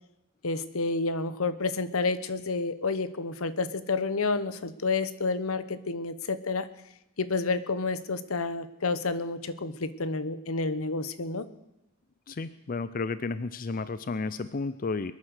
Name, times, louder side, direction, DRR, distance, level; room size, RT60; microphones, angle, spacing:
voice 1, 0.4-6.7 7.2-11.5, left 3 dB, 80° left, 13 dB, 1.0 m, -30 dB
voice 2, 12.3-15.1, left 4 dB, 40° left, 14 dB, 0.5 m, -32 dB
22.5 x 9.6 x 6.5 m, 0.91 s
head